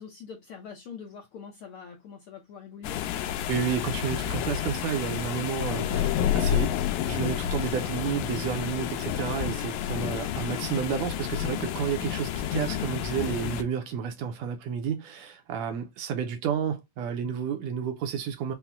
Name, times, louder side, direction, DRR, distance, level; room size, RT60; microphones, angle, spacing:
voice 1, 0.0-3.0, left 6 dB, 70° left, 1.3 m, -44 dB
sound 1, 2.8-13.6, left 10 dB, 90° left, 2.0 m, -30 dB
voice 2, 3.5-6.8 7.1-18.5, right 8 dB, 80° right, 1.7 m, -31 dB
5.7 x 2.1 x 3.4 m
omnidirectional pair, 3.4 m